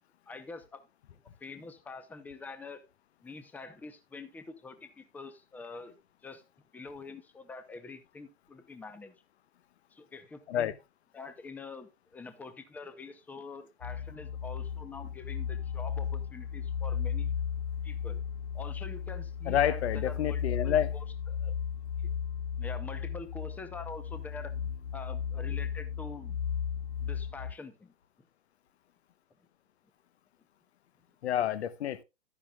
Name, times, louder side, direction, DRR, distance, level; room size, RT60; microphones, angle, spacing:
voice 1, 0.3-0.8 1.4-2.8 3.2-5.9 6.2-6.4 6.7-9.1 9.9-10.7 11.1-17.3 17.8-18.2 18.5-21.5 22.0-22.1 22.6-24.5 24.9-26.4 27.0-27.9, left 3 dB, 5° left, 0.8 m, -45 dB
sound 1, 13.8-27.5, left 7 dB, 85° left, 0.7 m, -35 dB
voice 2, 19.5-20.9 31.2-32.0, left 10 dB, 55° left, 1.1 m, -29 dB
12.5 x 9.8 x 2.4 m
hypercardioid pair, 130°, 38 cm